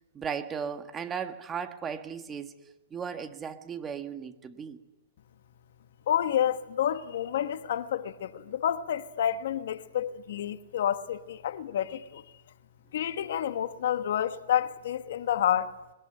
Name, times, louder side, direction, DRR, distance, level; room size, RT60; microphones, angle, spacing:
voice 1, 0.1-2.5 2.9-4.8, right 7 dB, 20° right, 1.5 m, -36 dB
voice 2, 6.1-12.2 12.9-15.8, left 10 dB, 65° left, 1.3 m, -29 dB
22.0 x 19.0 x 8.9 m
hypercardioid pair, 135°, 0 cm